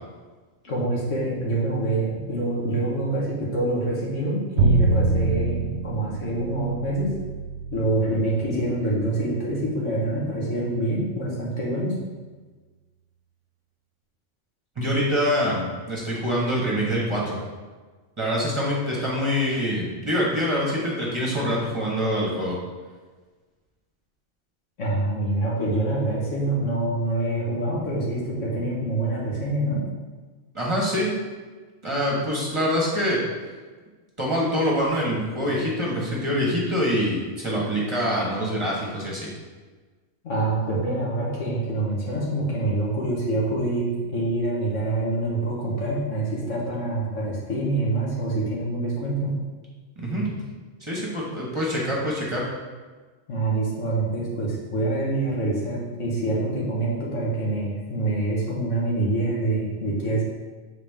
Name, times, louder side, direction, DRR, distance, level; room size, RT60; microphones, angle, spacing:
voice 1, 0.6-7.1 7.7-11.9 24.8-29.8 40.2-49.3 53.3-60.2, right 2 dB, 85° left, -4 dB, 1.8 m, -26 dB
Bowed string instrument, 4.6-10.7, right 2 dB, 70° right, 1.0 m, -26 dB
voice 2, 14.8-17.4 18.2-22.6 30.5-31.2 31.8-33.2 34.2-39.3 50.0-50.4 50.8-52.4, equal, 25° right, -5 dB, 1.2 m, -25 dB
7.1 x 3.9 x 3.5 m, 1.4 s
omnidirectional pair, 1.3 m